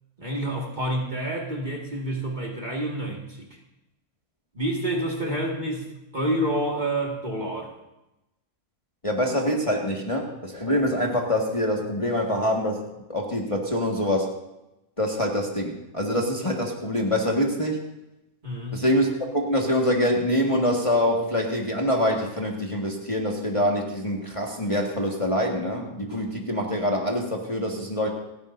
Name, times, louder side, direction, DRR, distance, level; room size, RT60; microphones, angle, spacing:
voice 1, 0.2-3.5 4.5-5.9 6.1-7.7 18.4-18.9, right 1 dB, 30° right, -1 dB, 2.1 m, -28 dB
voice 2, 9.0-12.8 13.1-14.3 15.0-17.8 18.7-28.1, equal, 20° left, -1 dB, 1.8 m, -25 dB
29.5 x 10.5 x 2.7 m, 0.93 s
omnidirectional pair, 1.6 m